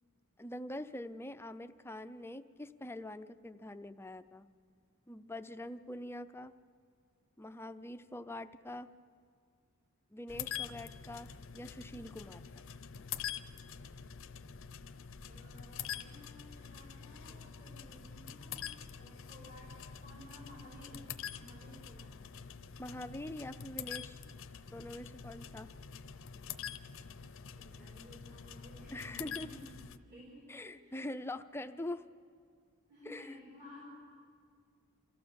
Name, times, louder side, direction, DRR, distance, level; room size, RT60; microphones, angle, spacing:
voice 1, 0.4-4.5 5.1-6.5 7.4-8.9 10.1-12.7 22.8-24.2 24.7-25.7 28.9-29.5 30.5-32.0 33.1-33.3, left 1 dB, 10° left, 10 dB, 0.5 m, -44 dB
sound 1, 10.3-30.0, left 8 dB, 60° left, 0.7 m, -46 dB
voice 2, 15.3-19.7 20.0-21.0 21.3-22.2 27.5-31.2 32.9-34.1, left 1 dB, 50° right, -5 dB, 4.5 m, -55 dB
27.5 x 14.5 x 7.0 m, 2.1 s
head